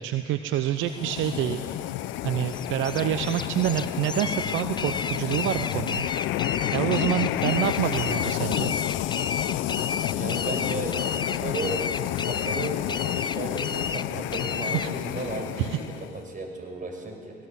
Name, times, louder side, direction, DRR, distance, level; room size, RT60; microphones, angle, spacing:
voice 1, 0.0-1.6 2.2-6.1 6.7-8.7 14.6-15.3 15.6-15.8, right 12 dB, 75° right, 9 dB, 0.8 m, -27 dB
sound 1, 0.8-16.2, left 13 dB, 75° left, 0.7 m, -30 dB
sound 2, 2.5-14.9, left 5 dB, 20° left, 0.5 m, -32 dB
voice 2, 10.1-17.3, right 2 dB, 40° right, 3 dB, 6.2 m, -35 dB
20.0 x 18.5 x 8.4 m, 2.2 s
hypercardioid pair, 60°, 20 cm